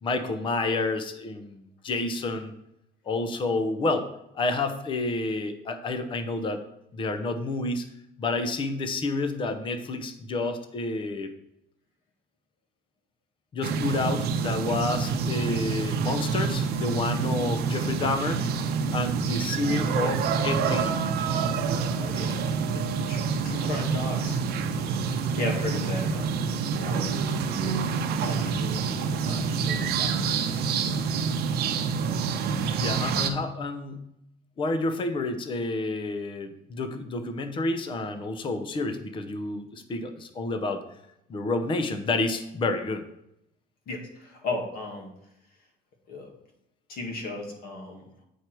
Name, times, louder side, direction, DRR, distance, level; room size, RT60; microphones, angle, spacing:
voice 1, 0.0-2.5 3.1-4.1 4.3-6.6 6.9-7.9 8.2-11.3 13.5-18.4 18.9-21.0 32.8-34.0 34.6-40.8 41.3-43.0, left 2 dB, 30° left, 8 dB, 0.7 m, -29 dB
sound 1, 13.6-33.3, right 5 dB, 65° right, 0.8 m, -27 dB
voice 2, 19.6-20.2 21.9-22.4 22.7-24.4 25.3-27.1 27.6-27.8 28.1-30.4 43.9-45.1 46.1-46.3 46.9-48.1, left 2 dB, 55° left, 1 dB, 1.9 m, -36 dB
8.3 x 4.7 x 4.5 m, 0.81 s
cardioid pair, 150°, 18 cm